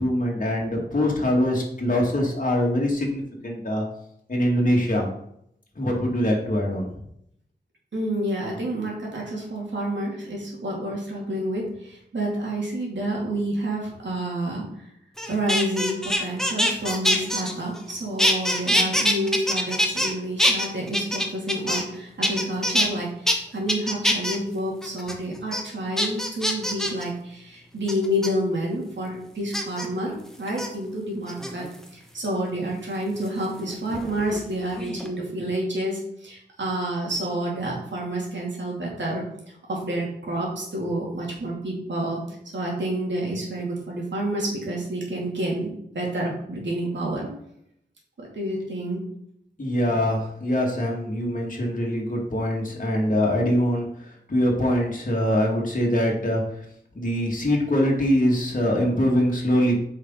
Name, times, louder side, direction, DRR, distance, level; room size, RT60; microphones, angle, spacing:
voice 1, 0.0-3.8 4.3-5.0 5.8-7.0 49.6-56.6 56.9-59.7, equal, 45° left, -2 dB, 2.3 m, -23 dB
voice 2, 7.9-14.9 15.3-31.7 31.9-39.2 39.7-47.3 48.2-49.0, right 1 dB, 85° right, -3 dB, 2.7 m, -29 dB
sound 1, 15.2-17.9 18.2-20.1 20.4-21.9 22.2-22.9 23.3-23.4 23.7-24.4 24.8-25.1 25.5-25.6 26.0-27.0 27.9-28.3 29.5-29.9 30.5-30.7 31.3-31.8 33.3-34.4 34.7-35.1, equal, ahead, 1.1 m, -24 dB
8.3 x 5.7 x 4.0 m, 0.73 s
wide cardioid pair, 100°, 19 cm